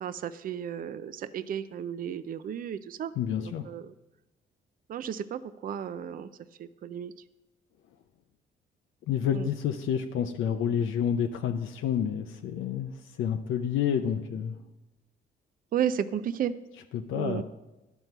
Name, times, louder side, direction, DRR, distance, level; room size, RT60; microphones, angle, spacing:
voice 1, 0.0-3.1 3.4-3.9 4.9-6.3 6.6-7.1 9.3-9.5 15.7-16.5 17.2-17.4, right 9 dB, 45° right, 13 dB, 0.4 m, -33 dB
voice 2, 3.2-3.7 9.1-14.6 16.9-17.4, left 8 dB, 80° left, 6 dB, 0.6 m, -29 dB
11.0 x 4.5 x 6.6 m, 1.0 s
cardioid pair, 90°, 20 cm